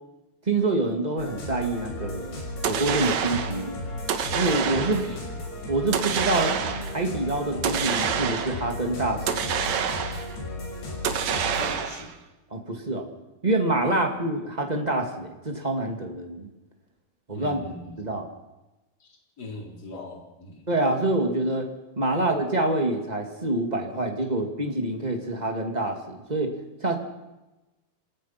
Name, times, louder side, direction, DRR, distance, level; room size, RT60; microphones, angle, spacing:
voice 1, 0.4-3.8 4.3-5.0 5.7-6.5 6.9-9.5 12.5-13.1 13.4-16.5 17.3-17.6 18.0-18.3 20.7-21.7 21.9-27.0, right 2 dB, 20° right, 3 dB, 1.1 m, -26 dB
sound 1, 1.2-11.8, left 1 dB, 75° left, 8.4 m, -35 dB
sound 2, 2.6-3.6 4.1-5.1 5.9-7.0 7.6-8.7 9.3-10.4 11.0-12.1, right 7 dB, 60° right, 2.1 m, -27 dB
voice 2, 5.0-5.3 11.6-12.1 13.8-14.0 17.3-18.0 19.0-20.7 22.1-22.2, left 2 dB, 25° left, 1 dB, 4.2 m, -40 dB
27.0 x 18.5 x 5.9 m, 1.1 s
omnidirectional pair, 4.7 m